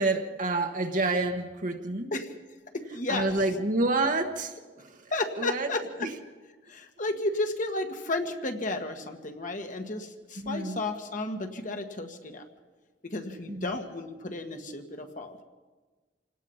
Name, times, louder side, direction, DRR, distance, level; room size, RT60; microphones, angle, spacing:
voice 1, 0.0-2.1 3.1-5.7 6.0-6.1 10.4-10.8 13.5-13.7, right 2 dB, 50° right, 4 dB, 1.2 m, -29 dB
voice 2, 2.7-3.3 5.1-6.1 6.7-12.4 13.0-15.4, left 2 dB, 50° left, 5 dB, 1.8 m, -33 dB
27.5 x 18.0 x 5.6 m, 1.3 s
head